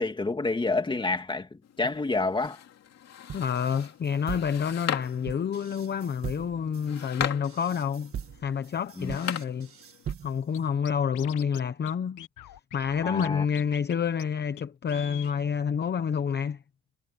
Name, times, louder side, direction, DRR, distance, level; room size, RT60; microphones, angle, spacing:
voice 1, 0.0-2.6 9.0-9.2 13.0-13.4, left 3 dB, 15° left, 2.3 m, -28 dB
sound 1, 1.6-10.2, left 10 dB, 60° left, 2.7 m, -39 dB
voice 2, 3.3-8.1 8.4-9.7 10.2-12.2 12.7-16.6, left 7 dB, 35° left, 0.9 m, -28 dB
sound 2, 3.3-10.6, right 8 dB, 45° right, 1.8 m, -41 dB
Scratching (performance technique), 10.5-10.6 10.9-11.6 11.9-12.0 12.2-13.3 13.5-13.9 14.2-14.3 14.6-14.7 14.9-15.3, left 12 dB, 85° left, 1.4 m, -43 dB
cardioid pair, 175°, 30 cm